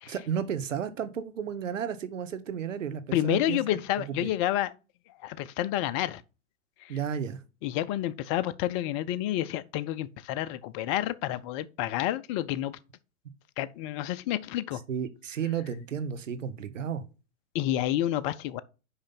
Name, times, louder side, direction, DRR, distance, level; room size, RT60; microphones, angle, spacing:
voice 1, 0.1-3.8 4.2-4.3 6.9-7.4 14.9-17.0, right 8 dB, 85° right, 1.1 m, -33 dB
voice 2, 3.1-4.7 5.2-6.2 6.8-7.0 7.6-12.8 13.6-14.8 17.5-18.6, left 13 dB, 25° left, 0.3 m, -29 dB
5.6 x 5.0 x 5.6 m
hypercardioid pair, 115°, 37 cm